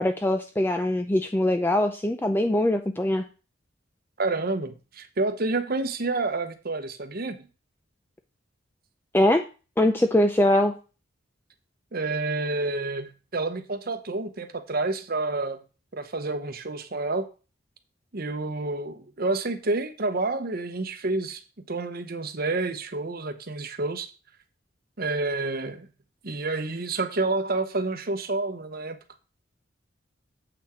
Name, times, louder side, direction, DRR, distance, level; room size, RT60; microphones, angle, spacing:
voice 1, 0.0-3.2 9.1-9.4 9.8-10.7, left 1 dB, 10° left, 6 dB, 0.4 m, -22 dB
voice 2, 4.2-7.5 11.9-15.6 15.9-17.3 18.1-21.4 21.7-24.1 25.0-25.9 26.2-29.0, right 3 dB, 50° right, 9 dB, 0.9 m, -29 dB
8.0 x 6.0 x 4.4 m, 0.34 s
head